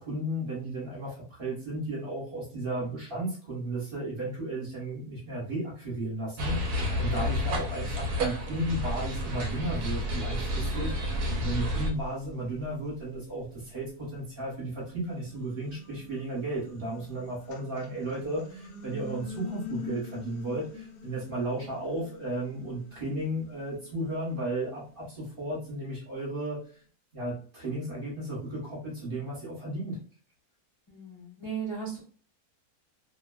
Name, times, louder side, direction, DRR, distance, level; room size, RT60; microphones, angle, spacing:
voice 1, 0.0-26.6 27.1-30.0, right 1 dB, 40° right, -6 dB, 1.1 m, -34 dB
sound 1, 6.4-11.9, equal, 70° right, 1.0 m, -30 dB
sound 2, 11.9-14.2 14.7-26.0, left 5 dB, 90° left, 1.3 m, -46 dB
voice 2, 30.9-32.0, right 6 dB, 25° left, -7 dB, 0.6 m, -37 dB
3.0 x 2.2 x 2.2 m, 0.42 s
omnidirectional pair, 1.8 m